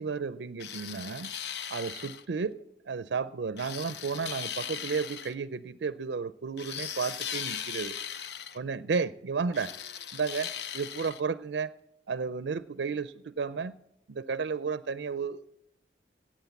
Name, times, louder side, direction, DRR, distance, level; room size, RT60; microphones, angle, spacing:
voice 1, 0.0-1.3 1.7-7.9 8.5-9.7 10.1-11.7 12.1-13.8 14.1-15.5, right 5 dB, 90° right, 15 dB, 0.5 m, -33 dB
sound 1, 0.6-2.2 3.6-5.3 6.6-8.6 9.5-11.2, left 8 dB, 75° left, 0.7 m, -38 dB
17.0 x 8.6 x 7.1 m, 0.80 s
head